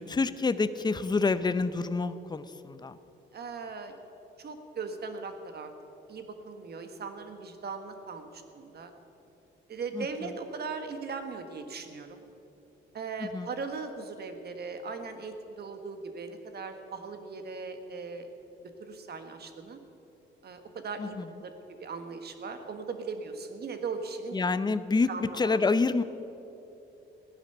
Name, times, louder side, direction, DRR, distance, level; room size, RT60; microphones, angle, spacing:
voice 1, 0.1-3.0 9.9-10.3 13.2-13.5 21.0-21.3 24.3-26.0, left 4 dB, 20° left, 13 dB, 0.6 m, -28 dB
voice 2, 3.3-3.9 4.4-5.7 6.1-8.9 9.7-12.1 12.9-18.3 18.8-19.8 20.4-21.5 21.8-24.4 25.1-25.7, right 4 dB, 55° right, 7 dB, 1.5 m, -39 dB
15.5 x 10.5 x 6.7 m, 2.9 s
cardioid pair, 90°, 20 cm